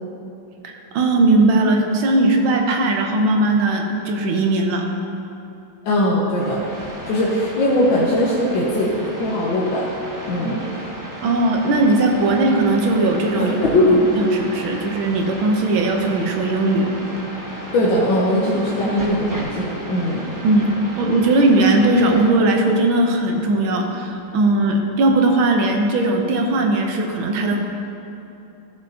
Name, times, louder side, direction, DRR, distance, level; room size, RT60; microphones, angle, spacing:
voice 1, 0.6-4.9 11.2-13.5 14.2-16.9 20.4-20.7 21.0-27.6, right 2 dB, 90° right, 2 dB, 1.7 m, -18 dB
voice 2, 5.8-6.6 7.1-8.9 9.2-9.9 10.3-10.6 13.4-13.9 17.7-20.2, left 1 dB, 75° left, -5 dB, 1.7 m, -20 dB
sound 1, 6.3-22.3, equal, 15° right, 0.6 m, -35 dB
14.5 x 6.3 x 2.8 m, 2.9 s
omnidirectional pair, 2.1 m